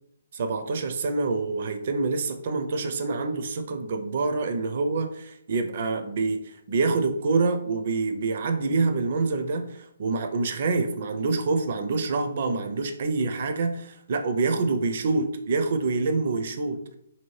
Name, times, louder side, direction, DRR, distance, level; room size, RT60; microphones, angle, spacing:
voice 1, 0.3-17.0, right 3 dB, 50° right, 7 dB, 0.4 m, -26 dB
2.8 x 2.7 x 3.1 m, 0.73 s
hypercardioid pair, 160°, 0 cm